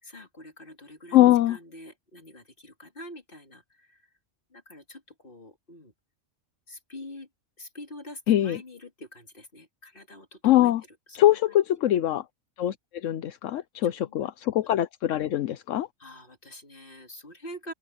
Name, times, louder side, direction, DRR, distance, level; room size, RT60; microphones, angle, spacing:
voice 1, 0.0-4.1 4.5-5.9 6.7-7.3 7.6-11.6 12.1-12.2 13.5-14.3 16.0-17.7, left 1 dB, 45° left, 3.5 m, -46 dB
voice 2, 1.1-1.6 8.3-8.6 10.4-10.8 11.1-12.2 12.6-15.9, left 13 dB, 80° left, 1.0 m, -22 dB
open air
omnidirectional pair, 1.3 m